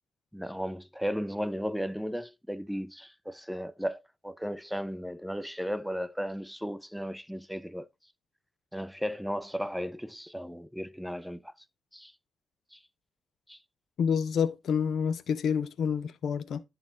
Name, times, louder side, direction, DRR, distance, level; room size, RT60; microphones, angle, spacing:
voice 1, 0.3-7.9 8.7-11.5 11.9-12.1 12.7-12.8 13.5-13.6, equal, ahead, 0.5 m, -35 dB
voice 2, 14.0-16.6, left 7 dB, 70° left, 0.5 m, -28 dB
10.5 x 4.2 x 3.6 m
cardioid pair, 65°, 0 cm